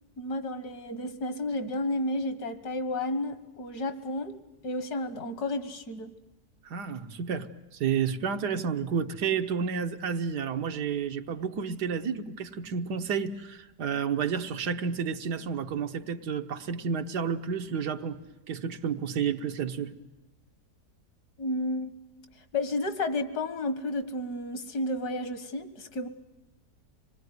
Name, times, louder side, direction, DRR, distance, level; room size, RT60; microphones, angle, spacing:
voice 1, 0.2-6.1 21.4-21.9 22.5-26.1, left 1 dB, 75° left, 11 dB, 2.0 m, -32 dB
voice 2, 6.6-18.2 18.5-19.9, right 6 dB, 90° right, 7 dB, 1.7 m, -31 dB
26.5 x 20.5 x 9.4 m, 1.0 s
omnidirectional pair, 1.7 m